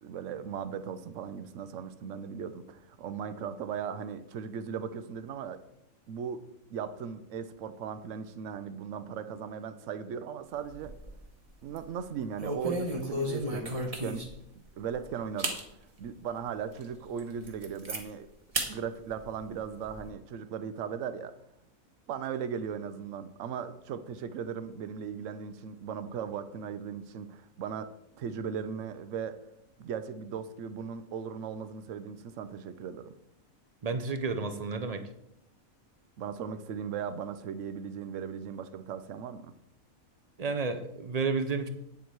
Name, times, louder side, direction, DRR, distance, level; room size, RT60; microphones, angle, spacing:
voice 1, 0.0-5.6 6.1-6.4 6.7-10.9 11.6-14.3 14.8-15.6 16.0-18.3 18.7-21.3 22.1-29.4 29.8-33.2 36.2-39.5, right 7 dB, 65° right, 12 dB, 1.0 m, -38 dB
sound 1, 10.6-11.3 11.6-11.9 12.4-14.5 14.9-15.0 15.4-15.6 16.2-16.3 16.8-16.9 17.2-18.0 18.5-18.7 19.1-20.0, right 1 dB, 25° right, 1.1 m, -34 dB
voice 2, 33.8-35.0 40.4-41.7, right 4 dB, 50° right, 9 dB, 0.4 m, -31 dB
8.7 x 7.1 x 4.7 m, 0.81 s
omnidirectional pair, 1.5 m